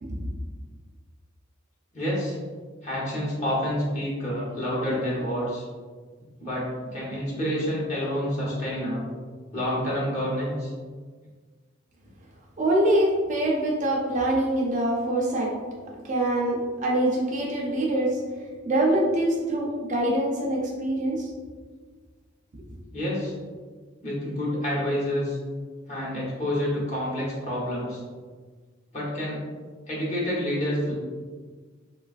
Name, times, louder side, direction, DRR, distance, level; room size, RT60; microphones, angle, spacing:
voice 1, 1.9-2.4 2.8-5.7 6.4-6.7 6.9-9.0 9.5-10.7 22.9-23.3 24.0-25.4 25.9-28.0 28.9-29.4 29.9-30.9, equal, 35° left, -6 dB, 0.9 m, -28 dB
voice 2, 12.6-15.6 16.0-18.2 18.7-21.3, right 1 dB, 40° right, -3 dB, 0.4 m, -24 dB
3.1 x 2.3 x 2.4 m, 1.5 s
head